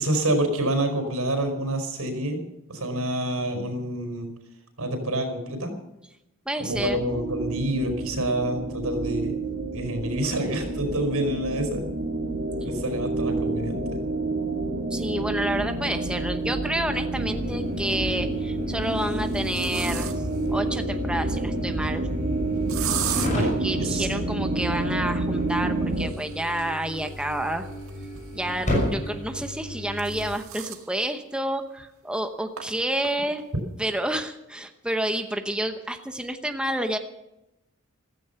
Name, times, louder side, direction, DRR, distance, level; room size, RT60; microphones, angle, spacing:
voice 1, 0.0-2.4 2.7-4.3 4.8-5.7 6.6-9.3 9.7-11.8 12.6-14.0 23.2-24.1, right 1 dB, 90° right, 6 dB, 5.0 m, -27 dB
voice 2, 6.5-7.0 14.9-20.1 20.5-22.1 23.3-27.7 28.3-33.4 33.8-37.0, right 1 dB, 5° right, 6 dB, 0.9 m, -29 dB
sound 1, 6.7-26.1, right 2 dB, 45° right, 2.0 m, -29 dB
sound 2, 16.3-16.4 17.9-18.3 18.9-20.5 22.7-23.3 25.9-28.5 29.5-30.9 31.3-31.4 31.8-31.9 32.6-32.7 33.0-33.4, right 10 dB, 70° right, 1.8 m, -36 dB
sound 3, 17.1-30.3, left 1 dB, 35° left, 6.1 m, -34 dB
15.5 x 14.5 x 5.8 m, 0.89 s
head